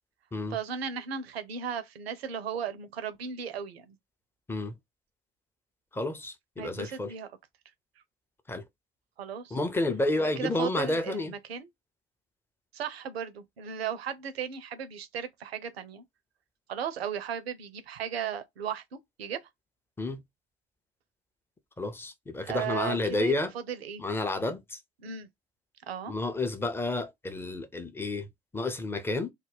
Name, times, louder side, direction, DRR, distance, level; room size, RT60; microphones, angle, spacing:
voice 1, 0.5-4.0 6.6-7.3 9.2-9.6 10.1-11.7 12.7-16.0 16.7-19.4 22.4-23.3 23.7-24.0 25.0-25.3 25.9-26.1, right 8 dB, 80° right, 0.5 m, -36 dB
voice 2, 5.9-7.1 8.5-8.6 9.5-11.3 20.0-20.2 21.8-23.5 24.0-24.8 26.1-29.3, left 2 dB, 10° left, 0.4 m, -30 dB
2.2 x 2.1 x 3.3 m
figure-of-eight pair, 55°, 31 cm